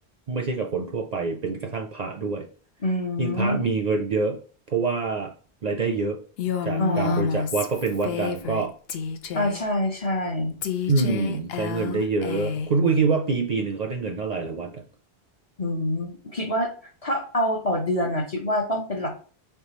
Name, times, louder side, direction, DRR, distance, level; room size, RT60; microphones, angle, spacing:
voice 1, 0.3-2.5 3.2-4.4 4.7-5.3 5.6-6.2 6.6-8.7 10.9-14.8, right 4 dB, 50° right, 2 dB, 0.5 m, -26 dB
voice 2, 2.8-3.6 6.8-7.3 9.3-10.6 15.6-16.7 17.0-19.1, left 1 dB, 40° left, 0 dB, 0.8 m, -26 dB
Female speech woman speaking, 6.4-8.6 8.9-9.6 10.6-12.7, left 7 dB, 75° left, 0.8 m, -30 dB
4.6 x 3.4 x 3.0 m, 0.40 s
omnidirectional pair, 1.1 m